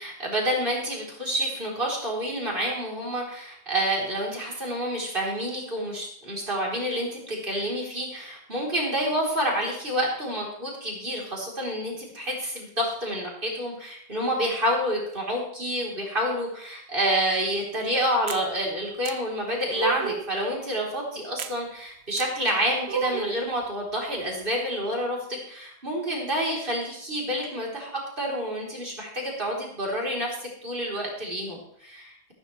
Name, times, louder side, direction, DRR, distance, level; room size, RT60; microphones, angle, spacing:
voice 1, 0.0-25.2 25.5-27.9 28.2-32.3, equal, 55° right, -3 dB, 4.2 m, -28 dB
sound 1, 18.3-18.5 19.1-19.2 19.8-20.3 21.4-21.6 22.2-22.3 22.9-23.4, right 6 dB, 70° right, 1.0 m, -30 dB
14.0 x 13.0 x 3.3 m, 0.66 s
omnidirectional pair, 1.1 m